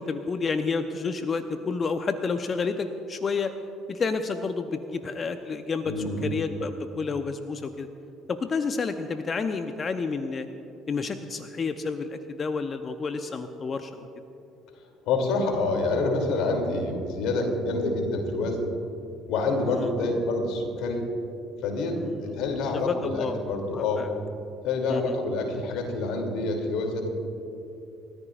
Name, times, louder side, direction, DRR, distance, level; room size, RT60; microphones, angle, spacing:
voice 1, 0.0-3.5 3.9-7.9 8.3-10.5 10.9-14.1 19.7-19.9 22.1-22.3 22.9-23.4 23.7-24.1 24.9-25.2, left 4 dB, 40° left, 8 dB, 0.8 m, -30 dB
voice 2, 5.8-6.3 15.1-18.7 19.3-21.0 21.6-24.0 24.6-27.1, left 3 dB, 70° left, 2 dB, 3.0 m, -27 dB
29.0 x 14.0 x 2.5 m, 2.7 s
hypercardioid pair, 60°, 0 cm